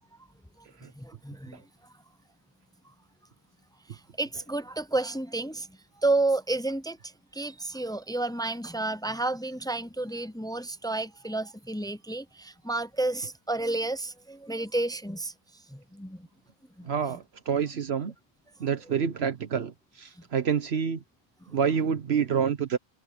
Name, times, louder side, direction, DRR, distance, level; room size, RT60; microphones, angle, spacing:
voice 1, 1.0-1.6 3.9-15.3 15.7-16.3 16.8-16.9, right 2 dB, 5° left, 0.3 m, -31 dB
voice 2, 16.8-18.1 18.6-21.0 21.5-22.8, right 7 dB, 70° right, 1.2 m, -28 dB
omnidirectional pair, 1.1 m